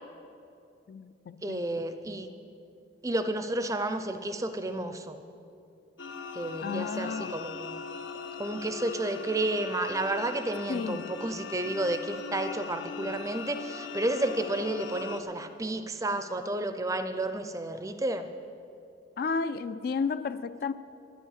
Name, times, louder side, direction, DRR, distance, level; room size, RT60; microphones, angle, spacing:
voice 1, 0.9-1.9 6.6-7.4 10.7-11.1 19.2-20.7, left 5 dB, 50° left, 0.3 m, -33 dB
voice 2, 1.4-2.3 3.0-5.2 6.3-7.8 8.4-18.3, right 1 dB, 15° right, 0.5 m, -31 dB
sound 1, 6.0-15.2, left 5 dB, 85° left, 0.7 m, -40 dB
10.5 x 10.0 x 6.5 m
head